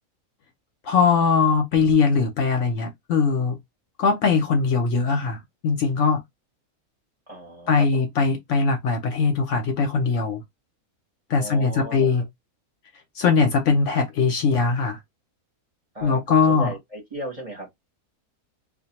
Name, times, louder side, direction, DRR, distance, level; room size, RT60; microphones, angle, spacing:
voice 1, 0.8-3.6 4.0-5.4 5.6-6.2 7.7-10.4 11.3-12.2 13.2-15.0 16.0-16.7, left 5 dB, 65° left, 0.8 m, -21 dB
voice 2, 7.3-8.0 11.4-12.1 15.9-17.7, right 1 dB, 30° right, 0.7 m, -36 dB
2.3 x 2.2 x 2.8 m
omnidirectional pair, 1.5 m